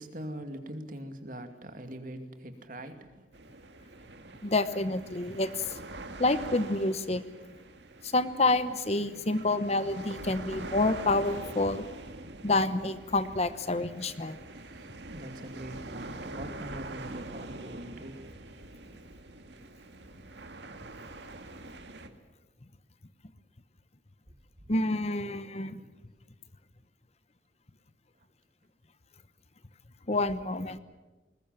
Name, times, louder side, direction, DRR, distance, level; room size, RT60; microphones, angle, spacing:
voice 1, 0.0-3.3 9.1-9.9 14.7-18.6 24.6-24.7 25.8-25.9, right 1 dB, 50° right, 7 dB, 2.5 m, -43 dB
sound 1, 3.3-22.1, right 2 dB, 80° right, 2.1 m, -44 dB
voice 2, 4.4-5.7 6.2-7.2 8.0-11.9 12.4-14.4 24.7-25.7 30.1-30.8, left 2 dB, 35° left, 13 dB, 1.0 m, -28 dB
21.0 x 20.0 x 9.2 m, 1.2 s
head